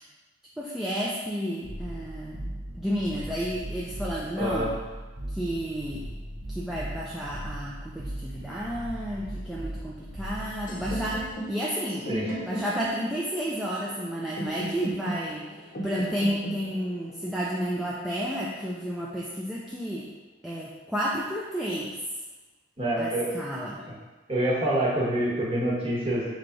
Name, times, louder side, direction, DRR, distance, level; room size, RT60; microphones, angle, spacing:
voice 1, 0.6-4.7 5.3-6.1 6.5-12.1 12.4-20.1 20.4-22.0 23.0-23.8, equal, ahead, -7 dB, 0.4 m, -31 dB
sound 1, 1.6-11.3, right 1 dB, 75° right, 0.8 m, -38 dB
voice 2, 4.4-4.7 12.1-12.3 22.8-23.3 23.9-24.0 24.3-26.3, right 1 dB, 30° right, -6 dB, 1.1 m, -26 dB
sound 2, 10.7-18.6, equal, 45° left, 0.8 m, -37 dB
3.5 x 3.2 x 3.9 m, 1.2 s
head